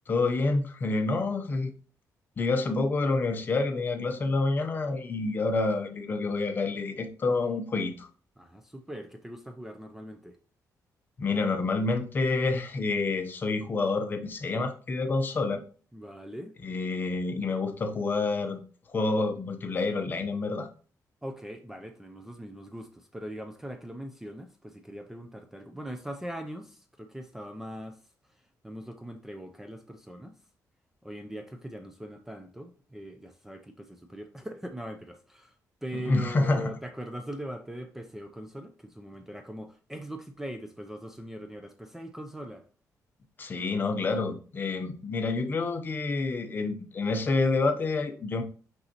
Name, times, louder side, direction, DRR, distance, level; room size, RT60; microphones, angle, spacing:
voice 1, 0.1-1.7 2.4-8.1 11.2-15.6 16.6-18.6 18.9-20.7 35.9-36.7 43.4-48.4, left 3 dB, 30° left, 0.8 m, -28 dB
voice 2, 8.4-10.4 15.9-16.6 21.2-28.0 28.6-30.4 31.0-35.5 35.8-42.6, right 1 dB, 5° right, 0.5 m, -41 dB
6.3 x 5.3 x 2.9 m
cardioid pair, 160°, 6 cm